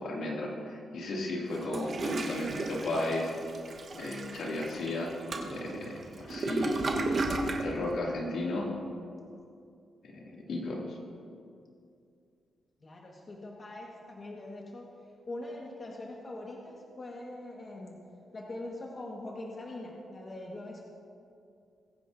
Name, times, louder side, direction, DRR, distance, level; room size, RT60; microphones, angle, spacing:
voice 1, 0.0-3.3 3.9-5.1 5.5-5.9 6.2-6.8 7.6-8.7 10.0-11.0, left 2 dB, 70° left, -3 dB, 2.4 m, -34 dB
Toilet flush, 1.5-7.7, right 2 dB, 45° right, 1.2 m, -34 dB
voice 2, 12.8-14.9 15.3-18.0 18.3-20.8, left 1 dB, 35° left, -2 dB, 1.5 m, -42 dB
22.0 x 10.0 x 2.7 m, 2.4 s
cardioid pair, 115°, 0 cm